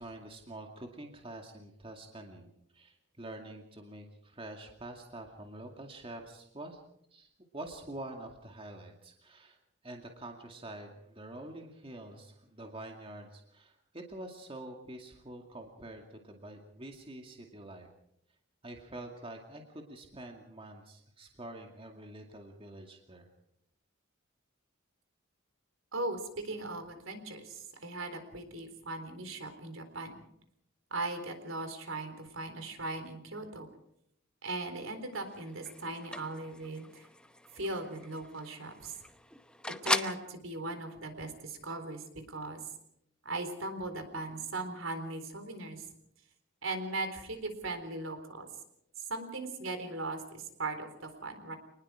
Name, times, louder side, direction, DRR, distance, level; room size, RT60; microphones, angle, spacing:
voice 1, 0.0-2.5 2.7-6.8 7.1-9.6 9.8-17.9 18.6-23.3, right 1 dB, 25° right, 2 dB, 2.3 m, -46 dB
voice 2, 25.9-30.1 30.9-33.7 34.4-37.0 37.6-39.0 39.8-42.6 43.2-45.8 46.6-48.5 49.0-51.6, right 2 dB, 70° right, 7 dB, 3.9 m, -38 dB
sound 1, 35.1-40.3, left 1 dB, 5° left, 0.8 m, -39 dB
26.5 x 20.0 x 5.0 m, 0.74 s
head